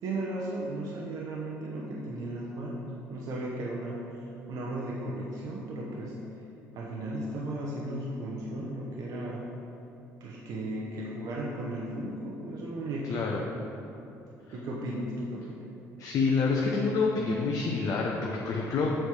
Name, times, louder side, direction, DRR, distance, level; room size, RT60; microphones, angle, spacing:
voice 1, 0.0-6.2 6.7-9.4 10.2-13.5 14.5-15.6, right 1 dB, 65° right, -4 dB, 0.9 m, -35 dB
voice 2, 13.1-13.4 16.0-18.9, left 4 dB, 60° left, -2 dB, 0.7 m, -27 dB
7.7 x 3.4 x 6.2 m, 2.9 s
supercardioid pair, 85°, 6 cm